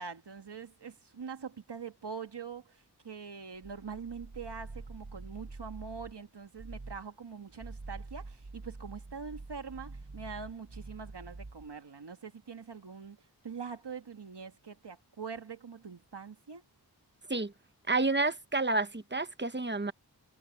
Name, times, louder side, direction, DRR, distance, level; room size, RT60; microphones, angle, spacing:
voice 1, 0.0-16.6, right 5 dB, 85° right, 1.7 m, -44 dB
sound 1, 3.5-6.2 6.6-7.1 7.5-11.8, right 3 dB, 55° right, 3.4 m, -46 dB
voice 2, 17.9-19.9, right 3 dB, 25° right, 1.1 m, -29 dB
wide cardioid pair, 40°, 40 cm